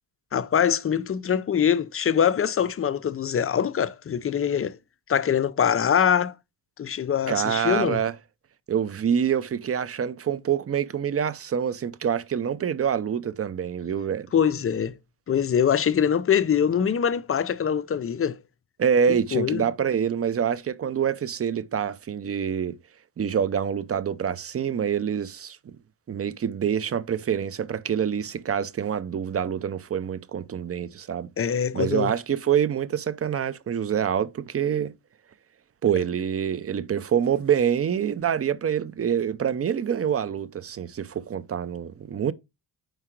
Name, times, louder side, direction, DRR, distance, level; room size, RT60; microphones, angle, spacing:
voice 1, 0.3-4.8 5.1-6.3 6.8-8.0 14.3-14.9 15.3-18.4 19.1-19.6 31.4-32.1, left 8 dB, 30° left, 0.5 m, -23 dB
voice 2, 7.3-8.1 8.7-14.3 18.8-22.8 23.2-25.6 26.1-31.3 31.7-34.9 35.8-42.3, right 8 dB, 35° right, 0.5 m, -26 dB
4.9 x 4.6 x 4.4 m
cardioid pair, 95°, 45 cm